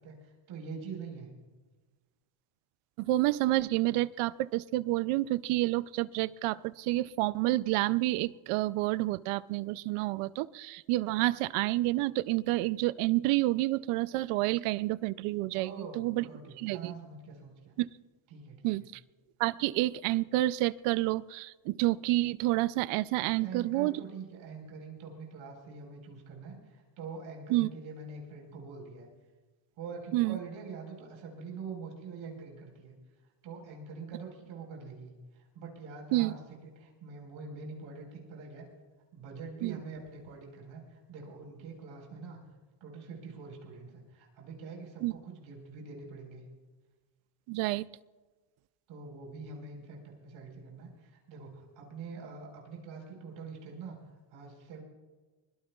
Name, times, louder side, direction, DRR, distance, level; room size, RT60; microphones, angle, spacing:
voice 1, 0.0-1.3 15.5-17.7 18.3-18.9 23.3-29.1 29.8-32.9 33.4-38.7 39.1-42.4 42.8-46.4 48.9-54.0 54.3-54.8, right 4 dB, 65° right, 0 dB, 4.6 m, -45 dB
voice 2, 3.0-16.2 16.6-16.9 17.8-17.9 18.6-18.8 19.4-24.0 27.5-27.7 30.1-30.4 36.1-36.3 39.6-39.8 45.0-45.1 47.5-47.9, right 18 dB, 85° right, 18 dB, 0.6 m, -29 dB
24.5 x 21.0 x 2.4 m, 1.3 s
cardioid pair, 175°, 50 cm